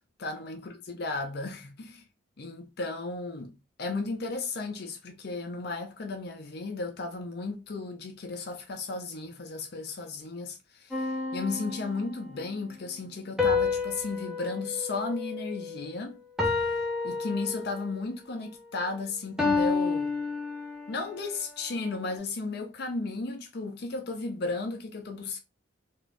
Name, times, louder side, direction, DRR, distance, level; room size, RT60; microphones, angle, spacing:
voice 1, 0.2-2.0 2.4-3.5 3.8-16.2 17.0-20.2 20.9-25.4, left 3 dB, 50° left, 0.5 m, -34 dB
sound 1, 10.9-12.4 13.4-15.9 16.4-18.0 19.4-21.1, left 4 dB, ahead, 0.6 m, -30 dB
2.9 x 2.5 x 3.3 m
head